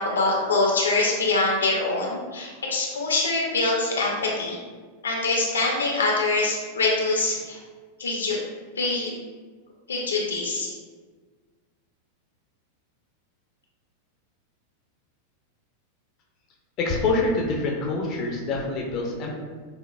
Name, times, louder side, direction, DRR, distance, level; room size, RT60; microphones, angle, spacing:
voice 1, 0.0-4.6 5.0-7.6 8.0-8.4 8.8-9.1 9.9-10.7, left 3 dB, 70° left, -2 dB, 0.7 m, -24 dB
voice 2, 16.8-19.3, left 3 dB, 35° left, -1 dB, 0.6 m, -25 dB
6.3 x 2.2 x 2.3 m, 1.4 s
figure-of-eight pair, 90°, 0 cm